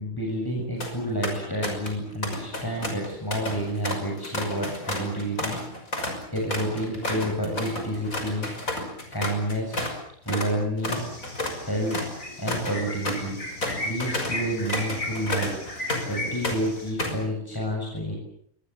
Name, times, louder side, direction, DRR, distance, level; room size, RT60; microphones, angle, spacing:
voice 1, 0.0-5.6 6.3-8.5 9.1-9.8 10.3-11.0 11.6-12.1 12.4-13.4 13.8-15.6 16.1-18.2, right 1 dB, 15° left, -1 dB, 7.3 m, -29 dB
sound 1, 0.6-0.9 1.2-2.0 2.2-10.0 10.3-10.5 10.8-16.2 16.4-17.3, left 1 dB, 70° left, 6.4 m, -31 dB
sound 2, 10.9-16.9, left 1 dB, 85° left, 8.0 m, -36 dB
27.5 x 23.5 x 7.4 m, 0.66 s
omnidirectional pair, 1.5 m